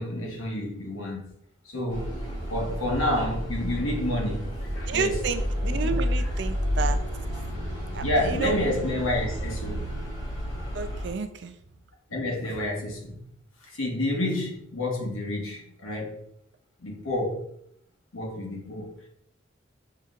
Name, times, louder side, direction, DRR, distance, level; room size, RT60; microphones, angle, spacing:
voice 1, 0.0-1.3 1.7-2.2 2.5-5.1 5.8-6.3 8.0-9.9 12.1-13.2 13.6-16.2 16.8-17.5 18.1-19.1, left 1 dB, 90° left, 1.0 m, -29 dB
sound 1, 1.9-11.1, equal, 75° left, 1.5 m, -30 dB
voice 2, 4.9-7.0 7.9-8.6 10.7-11.5, right 5 dB, 60° right, 0.4 m, -30 dB
5.7 x 2.8 x 2.4 m
head